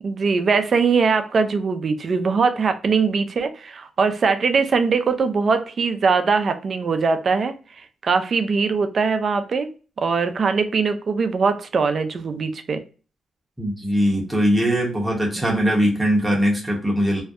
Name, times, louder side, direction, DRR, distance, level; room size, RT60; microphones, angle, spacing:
voice 1, 0.0-7.5 8.0-9.7 10.0-12.8 15.4-15.5, right 5 dB, 55° right, 0.4 m, -21 dB
voice 2, 13.6-17.2, equal, 15° right, 0.8 m, -21 dB
2.6 x 2.1 x 2.3 m
cardioid pair, 70°, 0 cm